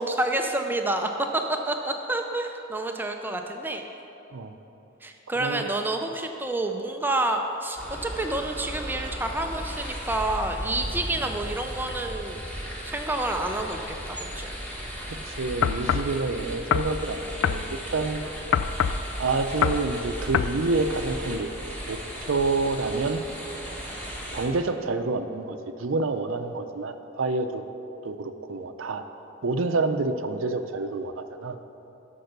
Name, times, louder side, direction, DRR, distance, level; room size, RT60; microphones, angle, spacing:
voice 1, 0.0-3.9 5.0-12.4 12.8-14.6, right 2 dB, 10° right, 4 dB, 0.5 m, -29 dB
sound 1, 7.8-24.5, equal, 10° left, 1.8 m, -36 dB
voice 2, 15.3-18.2 19.2-21.5 21.9-23.2 24.3-27.6 28.0-29.1 29.4-31.6, right 3 dB, 90° right, 8 dB, 0.6 m, -28 dB
sound 2, 15.6-16.1 16.7-16.9 17.4-17.6 18.5-19.0 19.6-19.9 20.3-20.6, left 8 dB, 75° left, 0.4 m, -24 dB
12.5 x 5.5 x 6.7 m, 3.0 s
head